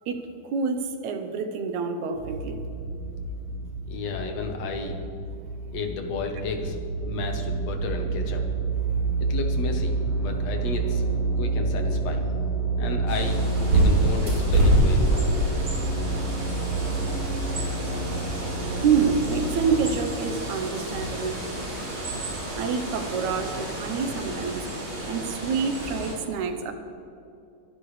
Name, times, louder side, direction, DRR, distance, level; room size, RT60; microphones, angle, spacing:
voice 1, 0.1-2.6 18.8-21.4 22.5-24.7 25.0-26.7, right 5 dB, 80° right, 7 dB, 2.4 m, -27 dB
sound 1, 2.1-19.9, right 3 dB, 25° right, 3.0 m, -29 dB
voice 2, 3.9-5.0 5.7-6.8 7.0-8.5 9.2-11.0 11.4-12.3 12.8-13.4 13.7-15.3, left 4 dB, 65° left, 4 dB, 2.3 m, -32 dB
Bird, 13.1-26.1, right 1 dB, 45° right, 4.7 m, -27 dB
23.0 x 11.5 x 3.3 m, 2.7 s
omnidirectional pair, 3.3 m